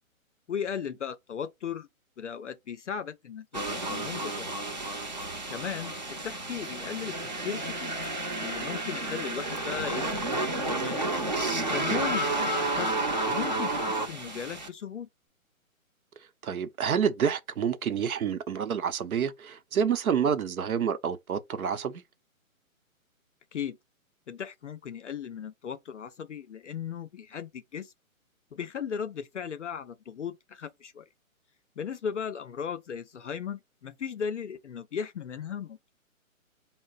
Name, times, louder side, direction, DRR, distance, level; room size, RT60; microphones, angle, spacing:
voice 1, 0.5-1.9 2.2-4.6 5.5-7.2 7.4-7.9 8.4-11.1 11.7-12.9 13.3-15.1 23.5-23.8 24.3-27.9 28.5-31.0 31.8-35.8, left 7 dB, 60° left, 0.5 m, -36 dB
sound 1, 3.5-14.7, right 2 dB, 35° right, 0.5 m, -31 dB
voice 2, 16.4-22.0, right 7 dB, 85° right, 0.8 m, -28 dB
4.5 x 2.0 x 3.8 m
hypercardioid pair, 170°, 42 cm